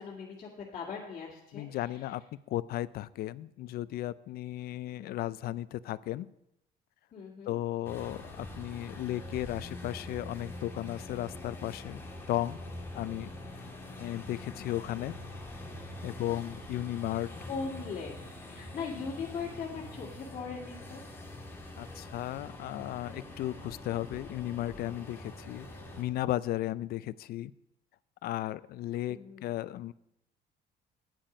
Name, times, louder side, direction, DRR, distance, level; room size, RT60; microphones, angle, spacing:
voice 1, 0.0-1.7 2.0-2.1 7.1-7.6 17.5-18.2 18.5-21.0 29.1-29.5, left 5 dB, 45° left, -6 dB, 2.2 m, -39 dB
voice 2, 1.5-2.2 2.5-6.3 7.5-12.0 12.3-12.6 12.9-13.3 14.0-15.1 16.0-17.3 21.8-25.7 26.0-27.5 28.2-29.9, left 14 dB, 65° left, 18 dB, 0.4 m, -35 dB
sound 1, 7.8-26.0, left 1 dB, 15° left, 2.3 m, -44 dB
9.3 x 8.9 x 5.0 m, 0.81 s
cardioid pair, 110°, 17 cm